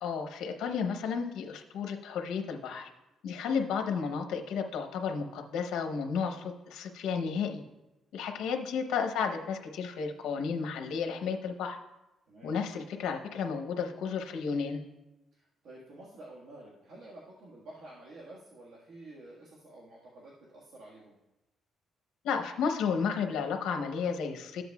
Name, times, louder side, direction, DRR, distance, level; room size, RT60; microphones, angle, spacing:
voice 1, 0.0-2.9 3.2-7.6 8.1-11.8 12.4-14.8 22.2-24.6, left 6 dB, 85° left, 4 dB, 0.7 m, -32 dB
voice 2, 15.3-21.1, right 2 dB, 75° right, -5 dB, 1.5 m, -50 dB
13.0 x 7.8 x 2.3 m, 0.98 s
cardioid pair, 90°, 0 cm